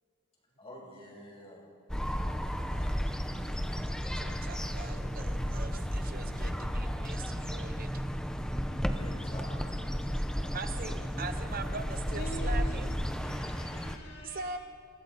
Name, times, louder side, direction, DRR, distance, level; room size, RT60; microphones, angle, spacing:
voice 1, 0.6-2.9 5.6-6.4 9.0-10.8, left 1 dB, 25° left, -3 dB, 7.1 m, -51 dB
sound 1, 1.9-14.0, equal, 5° left, 0.9 m, -33 dB
voice 2, 4.1-7.9 10.5-12.9 14.2-14.6, right 3 dB, 40° right, 8 dB, 0.9 m, -41 dB
voice 3, 11.2-12.8 13.2-14.6, equal, 50° left, -2 dB, 3.0 m, -45 dB
28.0 x 27.0 x 4.3 m, 2.1 s
head